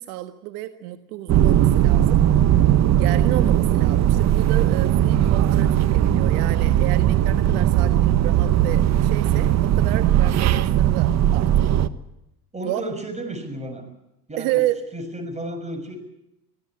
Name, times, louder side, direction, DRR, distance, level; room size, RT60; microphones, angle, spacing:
voice 1, 0.0-2.2 3.0-11.7 12.6-12.8 14.4-14.8, right 15 dB, 70° right, 9 dB, 1.6 m, -31 dB
sound 1, 1.3-11.9, right 11 dB, 35° right, 1.2 m, -18 dB
voice 2, 12.5-13.9 14.3-14.6 14.9-16.0, right 1 dB, 15° right, 7 dB, 6.6 m, -32 dB
24.5 x 16.0 x 8.6 m, 0.88 s
supercardioid pair, 110°, 47 cm